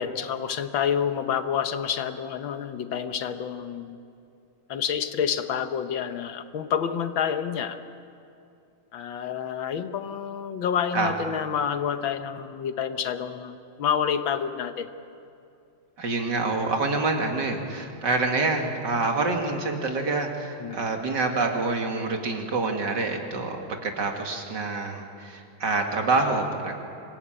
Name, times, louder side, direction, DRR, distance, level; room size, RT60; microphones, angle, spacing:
voice 1, 0.0-4.0 4.7-7.8 8.9-14.9 20.6-20.8, left 8 dB, 75° left, 9 dB, 1.8 m, -28 dB
voice 2, 16.0-26.7, right 3 dB, 60° right, 3 dB, 2.7 m, -27 dB
26.0 x 17.0 x 8.8 m, 2.5 s
omnidirectional pair, 2.1 m